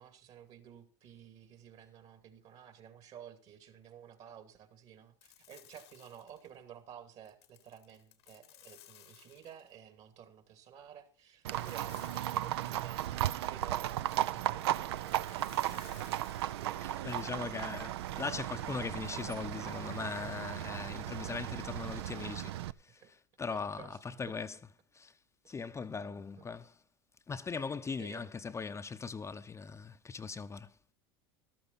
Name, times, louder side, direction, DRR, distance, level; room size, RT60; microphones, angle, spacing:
voice 1, 0.0-13.2 13.5-17.6 22.9-23.1 23.5-24.0 25.9-26.5 28.0-28.3, right 9 dB, 55° right, 2.7 m, -53 dB
sound 1, 5.2-6.6 7.3-9.8 11.5-13.3 15.1-16.8, left 12 dB, 90° left, 1.6 m, -59 dB
Livestock farm animals working animals, 11.4-22.7, right 13 dB, 80° right, 0.5 m, -36 dB
voice 2, 16.8-25.1 25.5-26.8 27.3-30.7, left 5 dB, 20° left, 0.7 m, -40 dB
13.5 x 13.0 x 4.2 m
hypercardioid pair, 90°, 13 cm